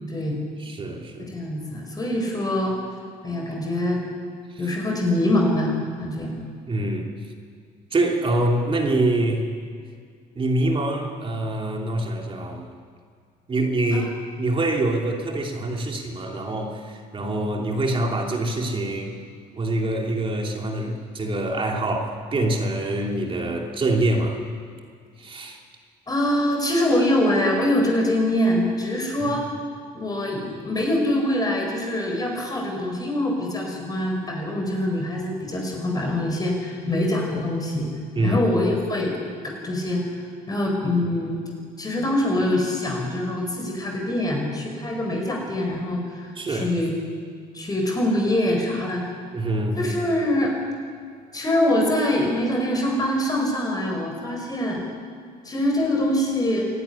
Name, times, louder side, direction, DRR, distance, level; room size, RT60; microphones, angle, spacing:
voice 1, 0.1-0.4 1.2-2.7 3.2-4.0 4.6-6.4 13.9-14.1 26.1-29.5 29.9-37.9 38.2-39.2 39.6-40.2 40.5-41.4 41.8-46.9 47.5-49.1 49.7-50.5 51.3-54.8 55.4-56.7, left 1 dB, 20° left, 0 dB, 4.6 m, -24 dB
voice 2, 0.6-1.3 4.5-4.6 6.7-7.1 7.9-9.5 10.3-12.7 13.5-14.1 14.4-19.2 19.5-24.4 25.2-25.6 29.2-29.3 38.1-38.4 46.4-46.7 49.3-49.9, right 1 dB, 30° right, 1 dB, 3.0 m, -25 dB
24.5 x 12.0 x 10.0 m, 2.1 s
cardioid pair, 110°, 17 cm